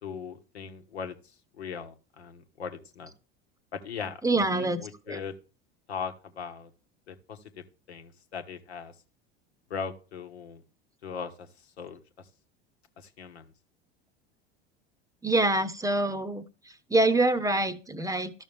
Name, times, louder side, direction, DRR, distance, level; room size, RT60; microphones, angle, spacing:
voice 1, 0.0-1.2 1.6-3.1 3.7-4.2 4.5-5.3 5.9-6.7 7.1-8.9 9.7-10.6 11.0-11.5 11.8-12.0 13.0-13.5, left 6 dB, 80° left, 6 dB, 1.3 m, -39 dB
voice 2, 4.2-4.8 5.1-5.2 15.2-16.4 16.9-18.3, right 2 dB, 10° right, 12 dB, 0.8 m, -25 dB
13.0 x 6.2 x 3.4 m, 0.35 s
hypercardioid pair, 80°, 32 cm